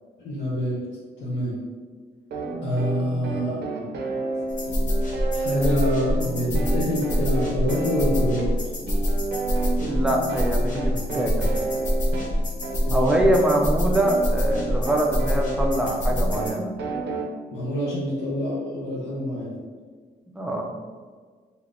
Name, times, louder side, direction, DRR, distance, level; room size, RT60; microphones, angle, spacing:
voice 1, 0.2-0.8 1.2-1.5 2.6-3.6 5.3-8.5 12.9-13.0 17.5-19.5, equal, 90° left, -8 dB, 0.7 m, -26 dB
sound 1, 2.3-17.3, right 3 dB, 70° right, 0.5 m, -31 dB
sound 2, 4.5-16.5, equal, 45° left, 0.7 m, -25 dB
voice 2, 9.8-11.5 12.9-16.7 20.3-20.7, right 1 dB, 5° right, 1 dB, 0.4 m, -24 dB
3.3 x 2.8 x 2.5 m, 1.5 s
cardioid pair, 105°, 18 cm